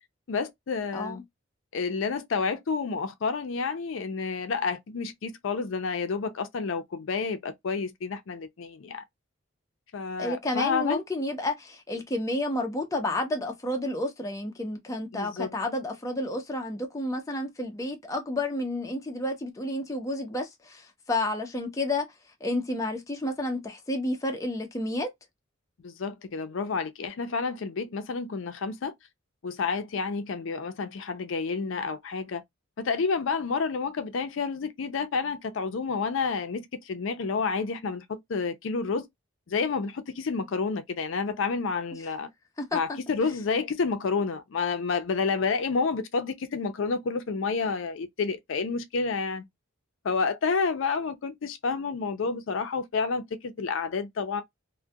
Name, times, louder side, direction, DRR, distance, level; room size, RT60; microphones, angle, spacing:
voice 1, 0.3-1.2 1.7-9.0 9.9-11.0 15.1-15.6 25.8-28.9 29.4-32.4 32.8-39.1 39.5-42.3 42.7-49.5 50.0-54.4, left 4 dB, 75° left, 0.4 m, -29 dB
voice 2, 10.2-22.1 22.4-25.1 42.6-43.0, left 1 dB, 15° left, 0.5 m, -30 dB
2.2 x 2.1 x 2.6 m
head